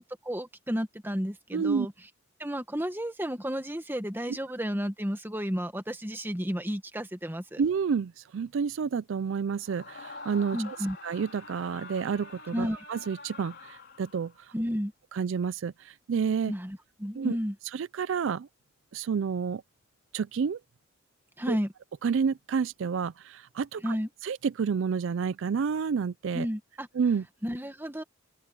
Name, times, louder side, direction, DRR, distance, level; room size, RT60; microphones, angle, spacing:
voice 1, 0.0-1.9 2.4-7.6 10.5-11.0 12.5-12.8 14.5-14.9 16.5-17.5 21.4-21.7 23.8-24.1 26.3-26.9 27.4-28.0, equal, 10° right, 1.5 m, -32 dB
voice 2, 1.5-1.9 7.6-10.8 11.0-14.5 15.1-16.5 17.1-17.4 17.7-18.5 18.9-19.6 20.1-20.6 21.5-21.6 22.0-24.0 24.2-26.5 27.0-27.2, right 6 dB, 65° right, 0.4 m, -29 dB
Screaming, 9.6-14.4, left 3 dB, 55° left, 4.6 m, -46 dB
open air
head